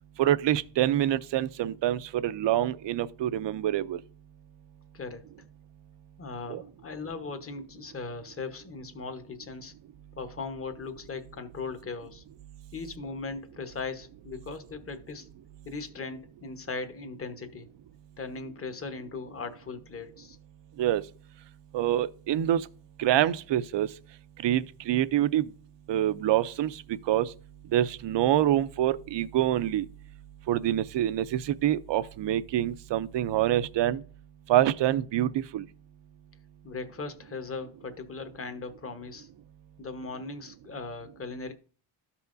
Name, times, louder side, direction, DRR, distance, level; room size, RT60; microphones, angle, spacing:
voice 1, 0.2-4.0 6.5-6.6 20.8-21.0 21.7-22.6 23.0-23.9 24.4-25.5 25.9-26.8 27.1-27.3 27.7-29.9 30.5-34.0 34.5-35.6, right 12 dB, 65° right, 0.6 m, -26 dB
voice 2, 6.2-9.7 10.2-12.2 12.7-15.3 15.6-17.7 18.2-20.4 36.6-39.3 39.8-41.5, left 4 dB, 30° left, 1.1 m, -38 dB
13.0 x 5.6 x 2.6 m
cardioid pair, 110°, 47 cm